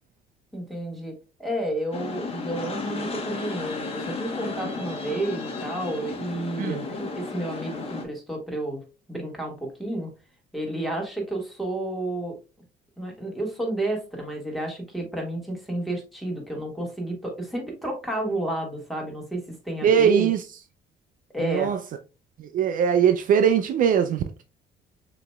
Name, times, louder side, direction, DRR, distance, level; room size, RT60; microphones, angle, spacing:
voice 1, 0.5-8.8 9.1-10.1 10.5-12.4 13.0-20.3 21.3-21.7, right 1 dB, ahead, 1.7 m, -31 dB
sound 1, 1.9-8.0, left 3 dB, 35° left, 1.1 m, -34 dB
voice 2, 19.8-20.4 21.4-21.8 22.4-24.2, right 8 dB, 55° right, 0.4 m, -21 dB
6.5 x 3.0 x 2.2 m
cardioid pair, 110°, 17 cm